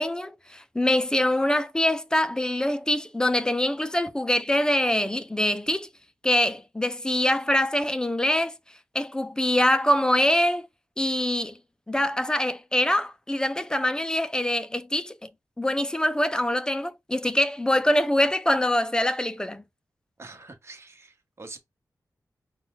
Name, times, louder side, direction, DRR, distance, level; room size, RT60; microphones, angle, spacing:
voice 1, 0.0-5.9 6.2-8.5 8.9-10.7 11.0-11.6 11.9-15.2 15.6-19.6, left 1 dB, 10° left, 0.3 m, -24 dB
voice 2, 20.2-21.6, right 3 dB, 40° right, 1.1 m, -45 dB
5.5 x 2.2 x 3.8 m
wide cardioid pair, 140°, 7 cm